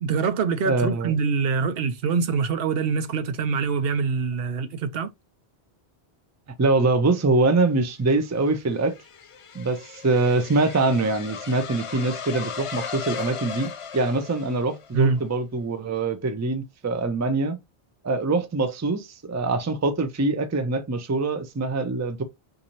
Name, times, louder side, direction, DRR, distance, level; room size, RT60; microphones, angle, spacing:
voice 1, 0.0-5.1 14.9-15.2, right 5 dB, 70° right, 0.8 m, -24 dB
voice 2, 0.6-1.1 6.6-9.0 9.5-17.6 18.0-22.2, right 3 dB, 20° right, 0.4 m, -24 dB
sound 1, 7.9-15.0, left 6 dB, 55° left, 0.3 m, -37 dB
4.0 x 2.7 x 2.9 m
omnidirectional pair, 1.1 m